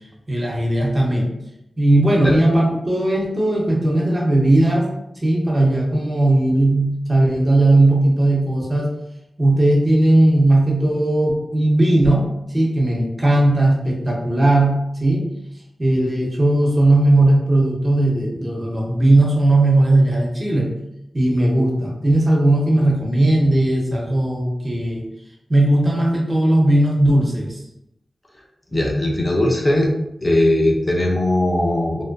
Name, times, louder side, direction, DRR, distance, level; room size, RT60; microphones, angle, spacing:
voice 1, 0.3-1.3 1.8-4.9 5.2-8.9 9.4-15.2 15.8-20.7 21.1-25.0 25.5-27.6, right 1 dB, 35° right, -2 dB, 0.8 m, -17 dB
voice 2, 28.7-29.9 30.2-32.0, left 1 dB, 30° left, -1 dB, 0.5 m, -19 dB
2.6 x 2.1 x 2.5 m, 0.83 s
cardioid pair, 45°, 0 cm